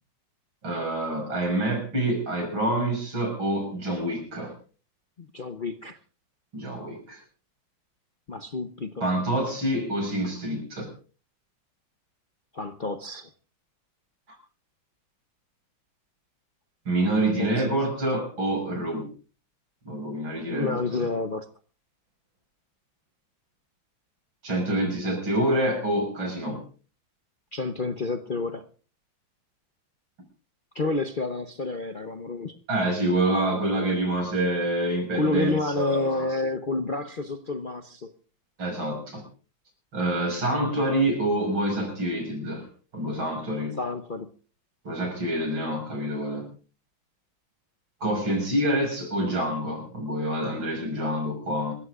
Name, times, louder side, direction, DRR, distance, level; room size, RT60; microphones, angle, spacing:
voice 1, 0.6-4.6 6.5-7.2 9.0-10.9 14.3-14.4 16.8-19.1 19.8-21.1 24.4-26.6 32.7-36.3 38.6-39.3 39.9-42.7 42.9-43.8 44.8-46.5 48.0-51.7, right 1 dB, 80° right, 3 dB, 6.5 m, -27 dB
voice 2, 5.2-6.0 8.3-9.0 12.5-13.3 17.2-17.8 20.5-21.5 27.5-28.7 30.7-32.6 35.1-38.1 43.8-44.3, left 3 dB, 60° left, 7 dB, 0.5 m, -29 dB
27.0 x 14.5 x 2.5 m, 0.38 s
omnidirectional pair, 2.2 m